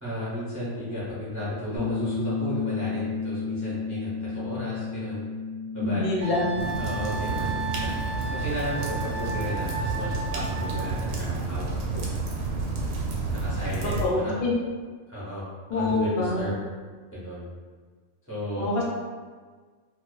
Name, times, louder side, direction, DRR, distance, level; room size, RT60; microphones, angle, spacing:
voice 1, 0.0-5.2 5.7-6.1 6.8-12.1 13.3-14.3 15.1-15.5 15.7-16.5 17.1-17.4 18.3-18.7, equal, 20° right, -10 dB, 0.4 m, -34 dB
Bass guitar, 1.8-8.0, left 5 dB, 85° left, 0.3 m, -33 dB
voice 2, 5.8-6.6 14.0-14.6 15.7-16.5 18.6-18.8, left 2 dB, 60° left, -3 dB, 0.7 m, -25 dB
Wind instrument woodwind instrument, 6.2-11.1, right 3 dB, 65° right, 0.6 m, -34 dB
sound 1, 6.6-14.1, right 3 dB, 85° right, 1.0 m, -30 dB
2.4 x 2.2 x 2.3 m, 1.5 s
omnidirectional pair, 1.3 m